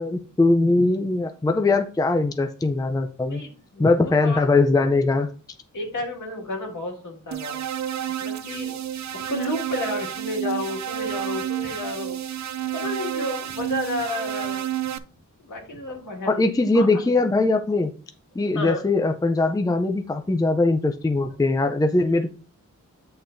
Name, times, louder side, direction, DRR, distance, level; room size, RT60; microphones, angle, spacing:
voice 1, 0.0-3.4 3.8-5.3 16.3-17.9 18.4-22.3, left 2 dB, 10° left, 6 dB, 0.5 m, -21 dB
voice 2, 3.3-4.5 5.7-7.6 8.2-8.7 9.1-12.2 12.6-14.6 15.4-16.5 16.7-16.9 18.5-18.8, left 2 dB, 65° left, 0 dB, 2.2 m, -31 dB
sound 1, 7.3-15.0, right 11 dB, 60° right, 0.5 m, -30 dB
8.5 x 5.7 x 2.6 m, 0.38 s
wide cardioid pair, 135°, 32 cm